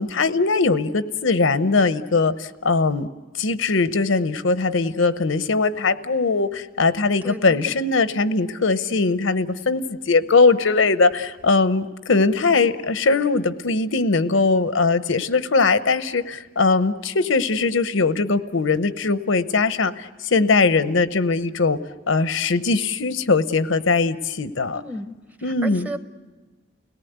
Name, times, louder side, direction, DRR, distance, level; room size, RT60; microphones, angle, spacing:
voice 1, 0.0-3.1 3.3-21.8 22.1-24.8 25.4-25.9, left 4 dB, 85° left, 12 dB, 0.8 m, -20 dB
voice 2, 7.2-7.8 24.7-26.0, right 1 dB, 10° right, 9 dB, 0.8 m, -34 dB
30.0 x 18.0 x 8.1 m, 1.3 s
head